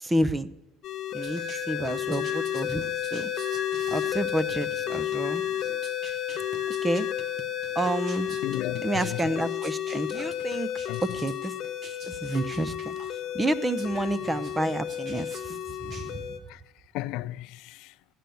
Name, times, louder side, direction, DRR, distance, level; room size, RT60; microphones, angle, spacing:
voice 1, 0.0-0.5 1.1-1.4 1.7-2.8 3.1-3.3 3.9-5.4 6.8-7.1 7.8-8.4 8.8-10.7 11.0-11.5 12.1-13.0 13.3-15.4 15.8-16.3, right 1 dB, 10° right, 0.5 m, -29 dB
sound 1, 0.8-16.4, left 11 dB, 45° left, 1.0 m, -32 dB
sound 2, 1.1-16.5, right 4 dB, 35° right, 1.0 m, -48 dB
sound 3, 1.2-8.8, left 4 dB, 60° right, 4.2 m, -41 dB
voice 2, 8.4-9.2 10.9-11.0 14.0-14.1 16.5-16.6 16.9-17.9, left 17 dB, 65° left, 0.4 m, -34 dB
14.0 x 9.0 x 6.9 m
cardioid pair, 150°, 0 cm